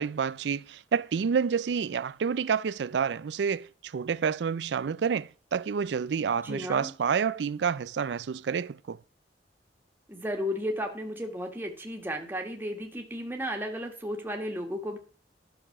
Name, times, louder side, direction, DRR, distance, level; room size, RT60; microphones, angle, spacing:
voice 1, 0.0-9.0, right 6 dB, 75° right, 0.4 m, -29 dB
voice 2, 6.4-6.9 10.1-15.0, equal, 10° right, 1.7 m, -34 dB
11.0 x 6.7 x 6.0 m
head